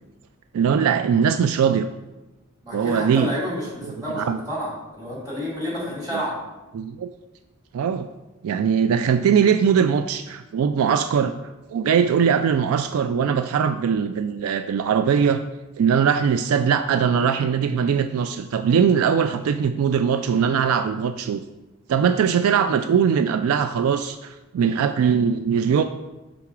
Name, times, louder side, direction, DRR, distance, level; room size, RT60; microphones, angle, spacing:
voice 1, 0.5-1.9 2.7-3.3 3.8-4.4 6.1-6.2 6.7-7.1 7.7-8.1 8.4-11.3 11.7-15.4 15.8-21.4 21.9-25.8, right 7 dB, 75° right, 10 dB, 0.3 m, -21 dB
voice 2, 2.6-6.4, equal, 20° right, -6 dB, 2.3 m, -30 dB
5.8 x 3.9 x 4.7 m, 1.1 s
head